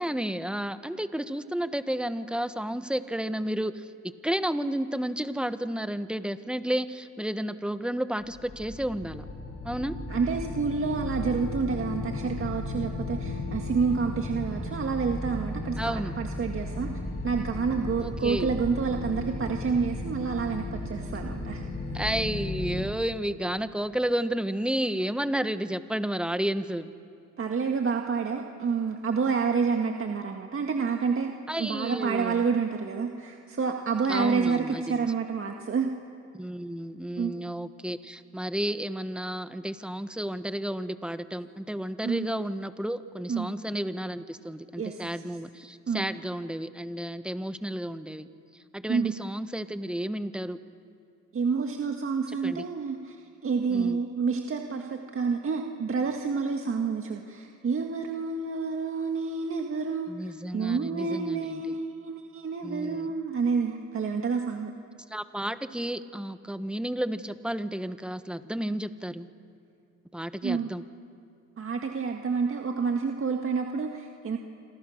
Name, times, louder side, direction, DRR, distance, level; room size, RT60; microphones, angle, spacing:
voice 1, 0.0-3.9 4.2-9.2 9.6-10.0 15.8-16.2 18.0-18.5 21.9-26.9 31.5-32.4 34.1-35.0 36.3-48.3 48.7-50.6 52.4-52.6 53.7-54.0 60.1-61.6 62.6-63.1 65.1-69.3 70.1-70.8, right 1 dB, 5° right, 11 dB, 1.2 m, -32 dB
sound 1, 8.2-22.8, left 2 dB, 55° left, 7.5 m, -35 dB
voice 2, 10.1-16.9 17.2-21.7 27.4-31.3 31.6-35.9 37.2-37.3 42.0-42.3 43.3-43.5 44.8-45.2 45.9-46.1 48.9-49.2 51.3-53.2 53.4-64.7 70.4-70.7 71.6-74.4, right 5 dB, 45° right, 3 dB, 1.9 m, -29 dB
27.5 x 27.0 x 6.6 m, 2.6 s
cardioid pair, 90°, 30 cm